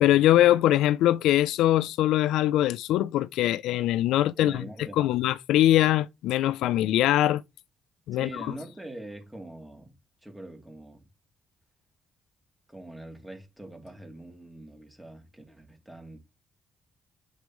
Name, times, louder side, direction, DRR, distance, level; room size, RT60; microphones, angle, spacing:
voice 1, 0.0-4.6 5.0-7.4 8.1-8.5, left 13 dB, 90° left, 0.4 m, -22 dB
voice 2, 4.4-5.2 8.1-11.1 12.7-16.2, right 1 dB, 5° right, 3.0 m, -43 dB
8.1 x 6.5 x 3.1 m
cardioid pair, 90°, 0 cm